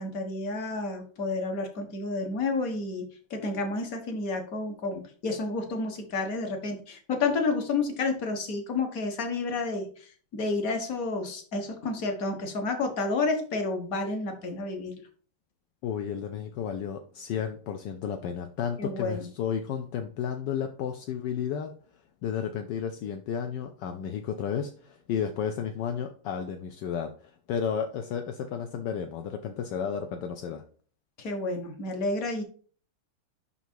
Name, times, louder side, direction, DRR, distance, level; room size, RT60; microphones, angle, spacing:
voice 1, 0.0-14.9 18.8-19.3 31.2-32.4, left 3 dB, 45° left, 5 dB, 1.5 m, -30 dB
voice 2, 15.8-21.7 22.2-30.6, left 7 dB, 70° left, 5 dB, 1.1 m, -32 dB
5.8 x 5.7 x 4.6 m, 0.42 s
omnidirectional pair, 2.4 m